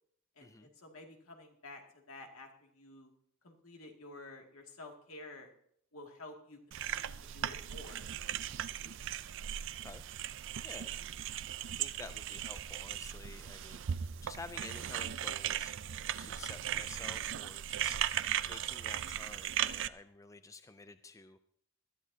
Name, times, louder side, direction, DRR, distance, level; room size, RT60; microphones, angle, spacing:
voice 1, 0.4-3.1 3.4-5.5 5.9-6.6 6.9-8.1 16.2-16.5, left 2 dB, 75° left, 2 dB, 2.4 m, -51 dB
sound 1, 6.7-19.9, right 10 dB, 60° right, 0.4 m, -38 dB
voice 2, 11.7-18.1 18.4-21.4, left 3 dB, 15° left, 11 dB, 0.4 m, -51 dB
20.0 x 13.0 x 2.8 m, 0.65 s
head